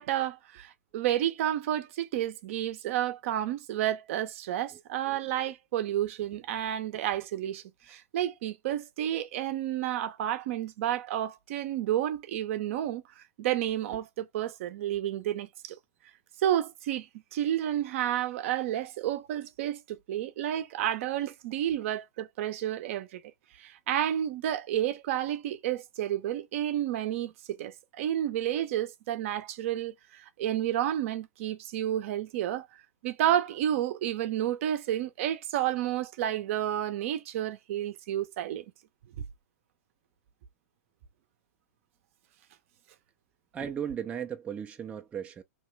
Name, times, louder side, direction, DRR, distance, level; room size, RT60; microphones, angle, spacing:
voice 1, 0.0-15.8 16.4-23.2 23.6-32.7 33.0-38.7, right 11 dB, 50° right, 0.6 m, -31 dB
voice 2, 4.7-5.2 43.5-45.4, right 8 dB, 15° right, 0.4 m, -37 dB
2.9 x 2.2 x 3.2 m
hypercardioid pair, 125°, 9 cm